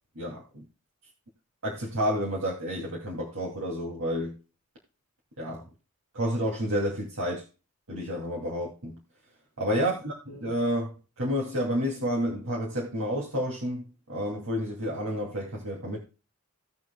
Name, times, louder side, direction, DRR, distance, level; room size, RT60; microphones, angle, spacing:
voice 1, 0.2-0.7 1.6-4.4 5.4-5.7 6.1-7.4 7.9-9.0 9.6-16.0, equal, 75° right, 2.6 m, -30 dB
17.5 x 6.2 x 2.3 m
head